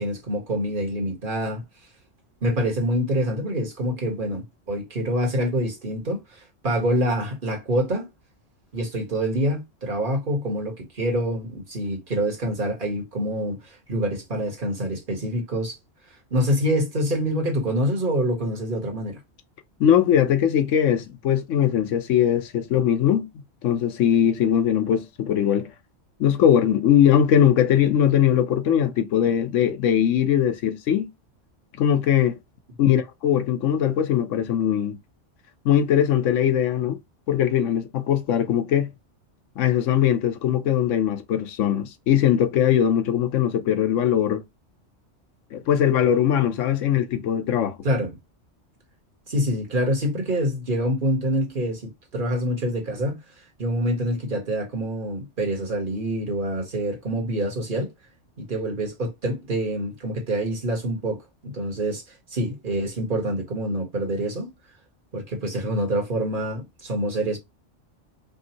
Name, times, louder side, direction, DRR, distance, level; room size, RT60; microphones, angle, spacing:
voice 1, 0.0-1.6 2.4-8.1 8.7-15.8 16.3-19.2 47.8-48.2 49.3-53.2 53.6-57.9 58.4-62.0 62.3-64.5 65.1-67.4, equal, 45° right, 1.8 m, -26 dB
voice 2, 19.8-23.3 23.6-25.7 26.2-31.1 31.8-32.4 32.8-35.0 35.6-37.0 37.3-38.9 39.6-44.4 45.5-47.8, left 9 dB, 85° left, 1.1 m, -20 dB
5.1 x 2.7 x 2.9 m
omnidirectional pair, 1.3 m